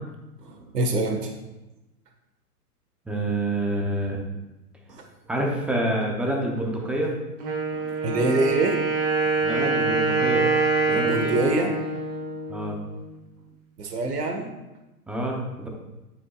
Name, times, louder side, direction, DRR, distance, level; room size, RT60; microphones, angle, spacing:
voice 1, 0.4-1.3 4.9-5.0 7.7-8.7 10.9-11.7 13.8-14.5, right 2 dB, 80° right, 3 dB, 1.5 m, -25 dB
voice 2, 3.1-4.2 5.3-7.1 9.4-10.5 10.9-11.4 12.5-12.8 15.1-15.7, right 1 dB, 5° right, 0 dB, 0.7 m, -27 dB
Wind instrument woodwind instrument, 7.4-13.1, right 3 dB, 30° right, 1.4 m, -25 dB
9.5 x 8.1 x 2.4 m, 1.0 s
hypercardioid pair, 130°, 47 cm